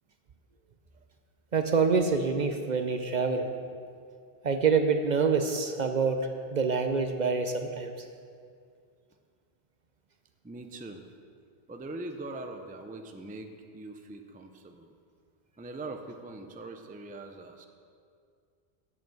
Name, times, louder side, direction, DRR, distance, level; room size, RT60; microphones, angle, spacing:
voice 1, 1.5-3.5 4.4-7.9, right 5 dB, 50° right, 6 dB, 0.7 m, -26 dB
voice 2, 10.4-11.0 11.7-13.5 13.7-14.9 15.6-17.7, right 2 dB, 10° right, 5 dB, 0.4 m, -41 dB
8.4 x 7.1 x 7.6 m, 2.3 s
omnidirectional pair, 1.0 m